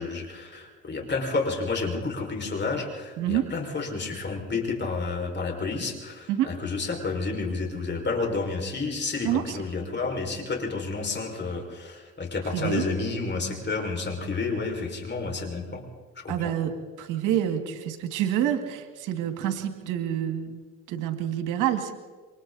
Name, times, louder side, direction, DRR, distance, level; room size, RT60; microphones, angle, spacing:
voice 1, 0.0-15.8 16.2-16.5, left 3 dB, 35° left, 1 dB, 5.7 m, -30 dB
voice 2, 9.2-9.6 12.5-12.8 16.3-16.7 17.0-20.6 20.9-21.9, right 11 dB, 80° right, 7 dB, 2.3 m, -27 dB
28.0 x 24.0 x 4.2 m, 1.3 s
supercardioid pair, 70°, 31 cm